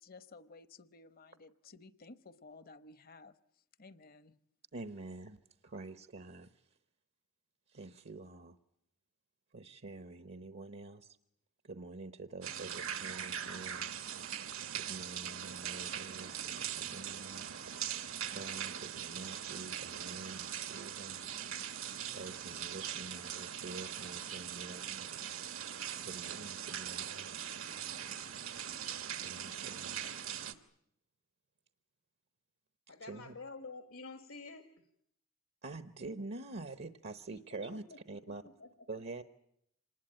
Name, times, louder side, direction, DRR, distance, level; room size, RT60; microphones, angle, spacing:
voice 1, 0.0-3.3 3.8-4.3, left 3 dB, 45° left, 13 dB, 0.9 m, -55 dB
voice 2, 4.7-6.6 7.7-8.6 9.5-11.2 11.6-13.9 14.7-17.5 18.2-21.2 21.8-25.5 26.0-27.3 29.2-30.0 32.9-33.4 35.6-38.4 38.9-39.2, right 3 dB, 55° right, 10 dB, 1.0 m, -47 dB
sound 1, 12.4-30.5, right 9 dB, 75° right, 1.4 m, -41 dB
voice 3, 32.9-34.7 37.5-37.6 38.6-38.7, left 3 dB, 75° left, 7 dB, 1.6 m, -48 dB
26.0 x 20.0 x 8.9 m, 0.77 s
head